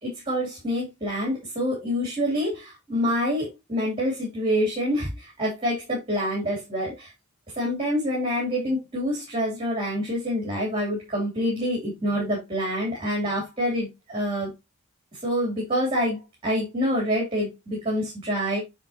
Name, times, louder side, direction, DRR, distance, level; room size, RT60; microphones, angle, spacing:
voice 1, 0.0-7.1 7.5-14.5 15.2-18.6, equal, 25° right, -4 dB, 3.3 m, -27 dB
9.0 x 4.6 x 2.9 m, 0.22 s
head